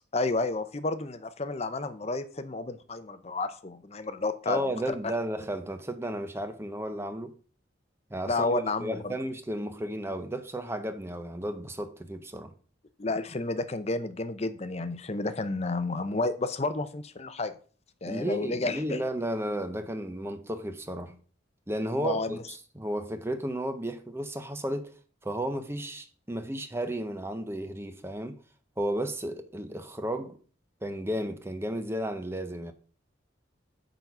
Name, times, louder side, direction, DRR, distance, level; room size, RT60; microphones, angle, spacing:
voice 1, 0.1-4.6 5.0-5.1 8.3-9.1 13.0-17.5 18.0-19.0 22.0-22.4, left 3 dB, 35° left, 0.6 m, -31 dB
voice 2, 4.5-7.3 8.1-12.5 18.1-21.2 21.7-24.9 25.2-28.4 28.8-30.4 30.8-32.7, right 1 dB, 15° right, 0.6 m, -33 dB
9.0 x 4.0 x 5.9 m
head